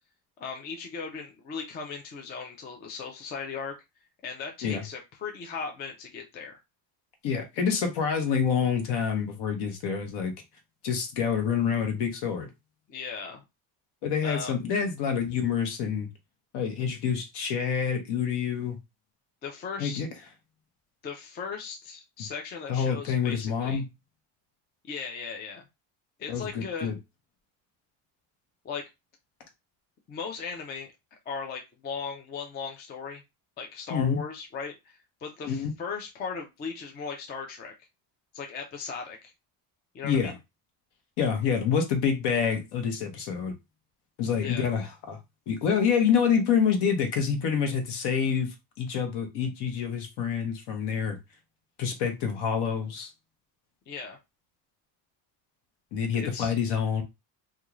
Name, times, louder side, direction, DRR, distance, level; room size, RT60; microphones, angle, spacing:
voice 1, 0.4-3.8 4.2-6.6 12.9-13.4 14.2-14.5 19.4-20.0 21.0-23.8 24.9-25.7 26.2-26.9 28.6-28.9 30.1-30.9 31.3-33.2 33.6-37.7 38.3-39.3 39.9-40.3 44.4-44.7 53.9-54.2 56.2-56.5, left 5 dB, 25° left, 0.3 m, -37 dB
voice 2, 7.2-10.3 10.8-12.5 14.0-16.1 16.5-18.8 19.8-20.1 22.7-23.9 26.3-27.0 33.9-34.2 35.4-35.7 40.0-40.3 41.2-43.5 44.2-45.2 45.5-51.2 51.8-53.1 55.9-57.0, left 7 dB, 65° left, 0.9 m, -27 dB
2.4 x 2.3 x 2.9 m
cardioid pair, 150°, 44 cm